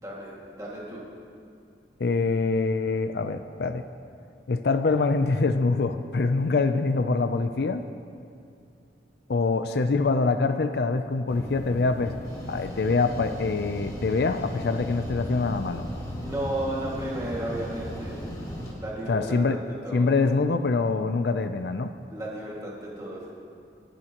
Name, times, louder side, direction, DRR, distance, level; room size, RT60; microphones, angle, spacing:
voice 1, 0.0-1.0 16.2-18.2 18.8-19.6 19.8-20.1 22.1-23.3, right 1 dB, 20° right, -4 dB, 2.0 m, -33 dB
voice 2, 2.0-3.8 4.5-7.8 9.3-12.2 12.5-15.9 19.1-19.6 19.9-21.9, left 3 dB, 65° left, 9 dB, 0.4 m, -24 dB
sound 1, 11.3-18.7, equal, 20° left, 1.9 m, -36 dB
20.0 x 10.5 x 3.0 m, 2.4 s
head